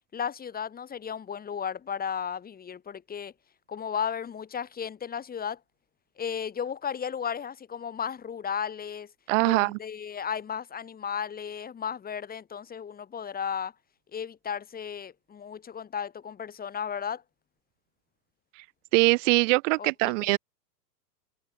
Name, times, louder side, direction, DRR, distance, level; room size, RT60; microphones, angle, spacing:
voice 1, 0.1-3.3 3.7-5.6 6.2-9.1 9.5-13.7 14.1-17.2 19.8-20.4, left 7 dB, 20° left, 2.4 m, -34 dB
voice 2, 9.3-9.8 18.9-20.4, right 26 dB, 45° right, 1.4 m, -22 dB
hypercardioid pair, 115°, 49 cm